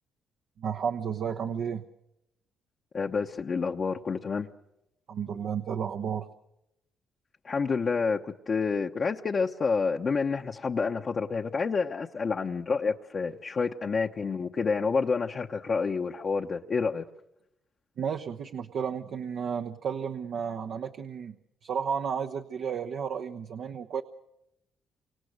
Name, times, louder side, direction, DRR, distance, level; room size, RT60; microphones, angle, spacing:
voice 1, 0.6-1.8 5.1-6.3 18.0-21.3 21.6-24.0, right 7 dB, 65° right, 1.1 m, -32 dB
voice 2, 2.9-4.5 7.4-17.0, left 5 dB, 45° left, 0.9 m, -28 dB
28.5 x 26.0 x 6.6 m
cardioid pair, 90°, 0 cm